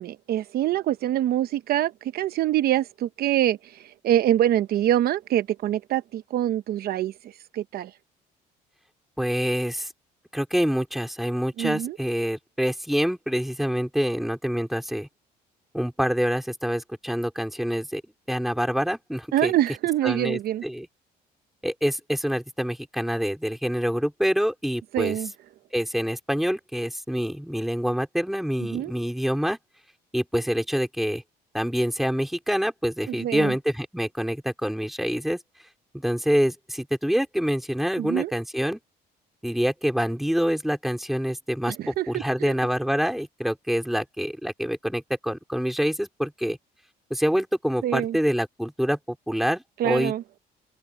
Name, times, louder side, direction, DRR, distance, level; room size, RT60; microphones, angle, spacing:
voice 1, 0.0-7.1 7.5-7.9 11.6-12.0 19.3-20.6 24.9-25.3 28.7-28.9 33.1-33.5 38.0-38.3 41.8-42.5 47.8-48.2 49.8-50.2, right 12 dB, 65° right, 0.8 m, -25 dB
voice 2, 9.2-9.9 10.3-15.1 15.7-18.0 18.3-19.5 20.0-20.9 21.6-25.2 25.7-29.6 30.1-31.2 31.5-35.4 35.9-38.8 39.4-46.6 47.1-50.1, equal, ahead, 4.4 m, -26 dB
cardioid pair, 110°, 17 cm